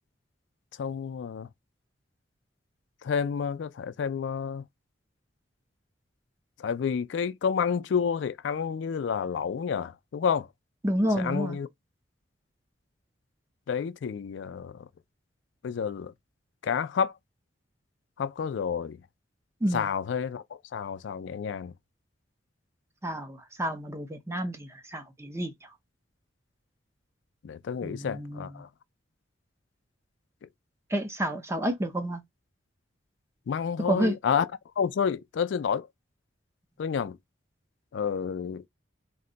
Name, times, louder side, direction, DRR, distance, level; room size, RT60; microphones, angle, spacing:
voice 1, 0.8-1.5 3.0-4.7 6.6-10.5 11.2-11.7 13.7-14.9 15.6-16.1 16.6-17.1 18.2-19.0 19.7-21.7 27.4-28.7 33.5-34.5 34.8-35.9 36.8-37.2 37.9-38.6, left 6 dB, 65° left, 0.3 m, -29 dB
voice 2, 10.8-11.6 19.6-19.8 23.0-25.7 27.8-28.5 30.9-32.2 33.8-34.2, right 1 dB, 15° right, 0.6 m, -30 dB
2.6 x 2.1 x 3.8 m
head